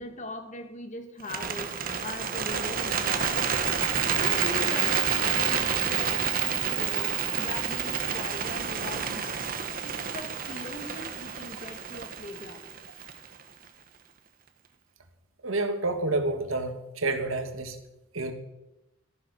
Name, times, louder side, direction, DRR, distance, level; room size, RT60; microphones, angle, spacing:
voice 1, 0.0-9.4 9.8-12.7, left 2 dB, 35° left, 6 dB, 2.0 m, -40 dB
Bird, 1.2-13.4, right 7 dB, 45° right, 1.2 m, -29 dB
voice 2, 15.4-17.8 18.1-18.3, right 2 dB, 85° right, 7 dB, 1.9 m, -29 dB
13.5 x 11.0 x 6.6 m, 0.95 s
head